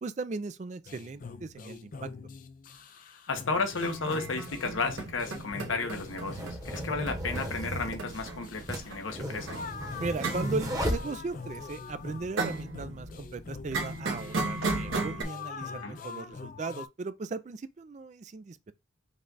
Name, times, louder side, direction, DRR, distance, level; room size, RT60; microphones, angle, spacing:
voice 1, 0.0-2.1 10.0-18.7, right 3 dB, 35° right, 0.3 m, -37 dB
sound 1, 0.9-16.9, left 4 dB, 45° left, 0.4 m, -44 dB
voice 2, 3.3-9.6 15.8-16.0, left 4 dB, 85° left, 1.0 m, -33 dB
sound 2, 3.8-15.2, right 3 dB, 85° right, 1.2 m, -37 dB
sound 3, 4.3-4.4 5.3-11.7, right 1 dB, 20° right, 1.0 m, -35 dB
5.3 x 2.4 x 3.9 m
head